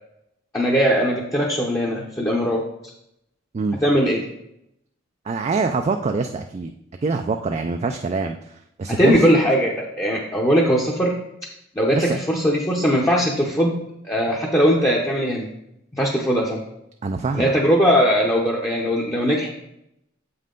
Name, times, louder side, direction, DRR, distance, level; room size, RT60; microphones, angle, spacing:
voice 1, 0.5-2.9 3.8-4.2 9.0-11.1 11.8-13.8 14.0-15.5 15.9-16.6 17.3-19.6, equal, 15° left, -2 dB, 0.7 m, -20 dB
voice 2, 5.3-6.7 7.0-9.2 11.9-12.2 17.0-17.5, right 4 dB, 35° right, 6 dB, 0.3 m, -25 dB
7.4 x 5.5 x 3.8 m, 0.80 s
head